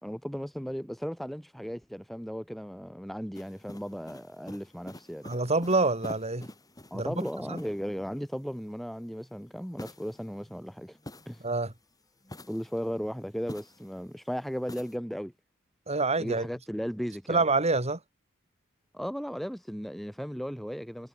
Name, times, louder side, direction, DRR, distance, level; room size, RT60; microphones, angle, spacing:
voice 1, 0.0-5.3 6.9-11.0 11.3-11.4 12.5-15.3 16.2-17.4 18.9-21.1, equal, ahead, 1.2 m, -36 dB
sound 1, 3.3-8.0 9.8-11.7 12.2-14.0 14.7-15.0, left 1 dB, 15° left, 4.1 m, -47 dB
voice 2, 5.2-6.5 6.9-7.6 11.4-11.7 15.9-16.5 17.3-18.0, right 3 dB, 30° right, 3.6 m, -27 dB
head